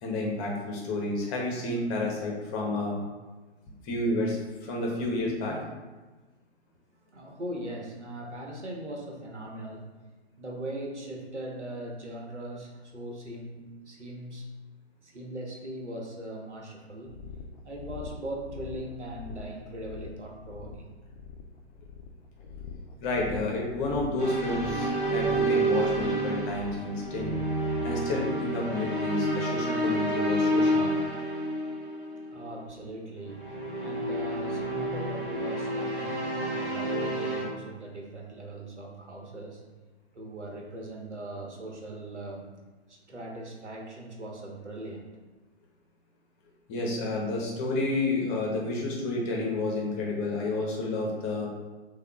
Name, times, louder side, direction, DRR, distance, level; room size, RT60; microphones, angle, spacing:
voice 1, 0.0-3.0 3.8-5.6 23.0-27.4 27.8-30.9 46.7-51.5, left 2 dB, 20° left, -1 dB, 0.8 m, -30 dB
voice 2, 6.9-9.9 10.4-14.5 15.0-17.2 17.6-20.9 32.3-39.6 40.1-42.5 42.9-45.1, right 1 dB, 90° right, -1 dB, 1.1 m, -40 dB
sound 1, 17.1-27.6, left 5 dB, 50° left, 0.5 m, -44 dB
sound 2, 24.2-32.5 33.2-37.4, right 1 dB, 20° right, 1.0 m, -29 dB
6.7 x 2.4 x 2.3 m, 1.2 s
figure-of-eight pair, 125°, 34 cm